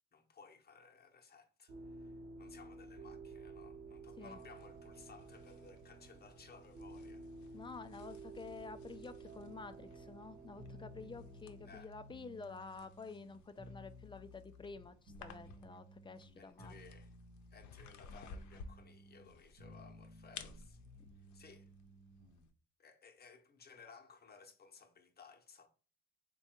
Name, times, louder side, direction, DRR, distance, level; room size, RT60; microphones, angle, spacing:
voice 1, 0.1-7.6 11.6-11.9 16.4-17.1 17.5-20.8 21.3-21.7 22.8-25.7, left 5 dB, 30° left, 0.7 m, -59 dB
sound 1, 1.7-11.8, right 3 dB, 45° right, 0.9 m, -52 dB
sound 2, 4.3-22.5, left 5 dB, 70° left, 0.6 m, -58 dB
voice 2, 7.5-16.7, left 4 dB, 15° left, 0.3 m, -50 dB
sound 3, 10.6-22.5, equal, 75° right, 1.0 m, -57 dB
3.4 x 2.3 x 4.3 m
cardioid pair, 90°, 30 cm